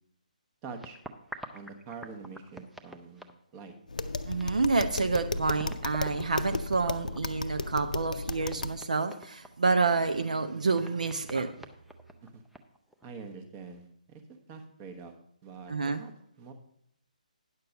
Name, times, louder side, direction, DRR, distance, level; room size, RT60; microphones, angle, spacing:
voice 1, 0.6-1.0 1.5-3.3 3.5-3.8 12.2-12.4 13.0-14.2 14.5-15.1 15.4-16.1 16.4-16.5, right 5 dB, 20° right, 7 dB, 1.1 m, -45 dB
sound 1, 0.8-3.8 4.1-4.2 4.4-9.5 10.1-10.2 10.7-13.1, right 1 dB, ahead, 0.5 m, -48 dB
Tap, 3.9-8.8, left 3 dB, 65° left, 0.6 m, -34 dB
voice 2, 4.2-11.5 15.7-16.0, right 4 dB, 60° right, 8 dB, 0.7 m, -28 dB
9.7 x 6.7 x 5.2 m, 0.72 s
figure-of-eight pair, 140°, 4 cm